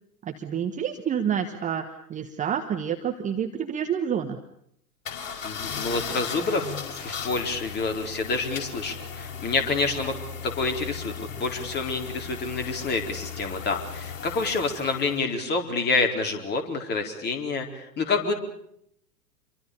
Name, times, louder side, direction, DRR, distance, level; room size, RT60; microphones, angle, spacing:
voice 1, 0.2-4.4, right 8 dB, 15° right, 6 dB, 1.3 m, -28 dB
sound 1, 5.0-15.2, left 6 dB, 55° left, 5.3 m, -37 dB
voice 2, 5.4-18.3, left 3 dB, 20° left, 4 dB, 4.3 m, -28 dB
28.0 x 24.0 x 6.9 m, 0.73 s
figure-of-eight pair, 100°, 47 cm